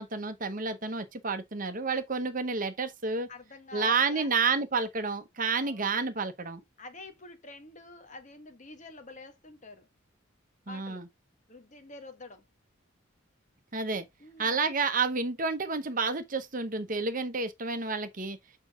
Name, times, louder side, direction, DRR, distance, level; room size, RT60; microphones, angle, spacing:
voice 1, 0.0-3.3 3.7-6.6 10.7-11.1 13.7-14.0 14.4-18.4, right 4 dB, 40° right, 1.0 m, -30 dB
voice 2, 3.3-4.5 5.6-5.9 6.8-9.9 10.7-11.0 11.5-12.4 14.2-14.7, left 2 dB, 40° left, 1.5 m, -47 dB
7.1 x 4.8 x 3.7 m
head